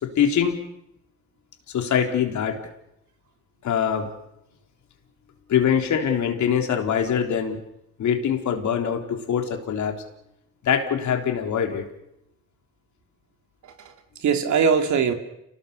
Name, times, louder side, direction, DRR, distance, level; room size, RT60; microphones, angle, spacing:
voice 1, 0.0-0.6 1.7-2.6 3.6-4.1 5.5-7.6 8.0-10.0 10.6-11.8, left 8 dB, 70° left, 4 dB, 3.8 m, -23 dB
voice 2, 13.6-15.1, right 6 dB, 70° right, 6 dB, 2.9 m, -22 dB
29.5 x 19.0 x 6.9 m, 0.82 s
cardioid pair, 90°, 30 cm